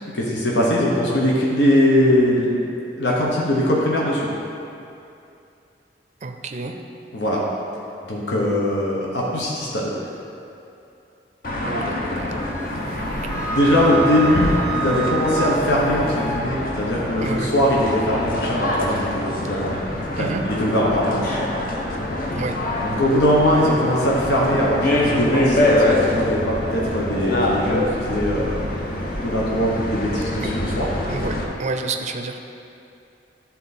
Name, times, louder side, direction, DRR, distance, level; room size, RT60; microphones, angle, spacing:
voice 1, 0.1-2.6 3.0-4.3 7.1-7.4 8.0-9.9 13.5-19.8 20.2-21.3 22.8-28.6 29.1-30.9, left 1 dB, 85° left, -4 dB, 1.1 m, -21 dB
voice 2, 6.2-6.8 11.6-12.5 17.2-17.5 20.2-20.4 22.4-22.6 30.4-30.5 31.1-32.4, right 3 dB, 40° right, 5 dB, 0.5 m, -29 dB
sound 1, 11.4-31.4, left 1 dB, 55° left, 0.9 m, -25 dB
Wind instrument woodwind instrument, 12.4-16.5, right 6 dB, 15° left, 0.6 m, -30 dB
11.0 x 4.1 x 4.2 m, 2.6 s
head